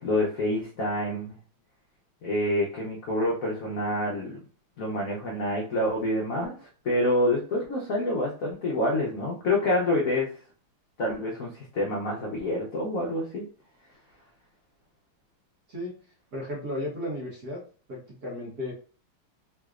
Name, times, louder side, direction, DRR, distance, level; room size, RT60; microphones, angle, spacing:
voice 1, 0.0-1.4 2.2-4.4 4.8-10.3 11.0-13.5, left 1 dB, 70° left, -3 dB, 0.8 m, -27 dB
voice 2, 16.3-17.6 17.9-18.7, left 1 dB, 50° right, -4 dB, 1.5 m, -34 dB
3.8 x 3.0 x 2.4 m, 0.39 s
omnidirectional pair, 2.4 m